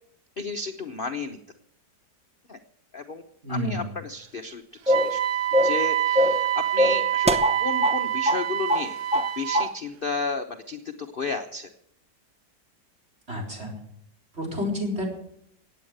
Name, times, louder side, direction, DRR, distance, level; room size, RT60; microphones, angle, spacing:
voice 1, 0.4-1.4 2.5-2.6 2.9-3.2 3.5-5.2 5.6-6.5 6.7-9.0 9.4-11.7, left 3 dB, 40° left, 5 dB, 0.9 m, -33 dB
voice 2, 3.4-3.9 13.3-13.7 14.3-15.1, left 1 dB, 35° right, 0 dB, 4.5 m, -29 dB
sound 1, 4.9-5.2 5.5-5.8 6.1-6.5 6.8-8.0 8.2-8.4 8.7-9.3 9.5-9.7, left 1 dB, 10° right, 0.4 m, -22 dB
Wind instrument woodwind instrument, 4.9-9.7, right 12 dB, 70° right, 1.5 m, -26 dB
16.5 x 9.3 x 7.9 m, 0.73 s
omnidirectional pair, 1.8 m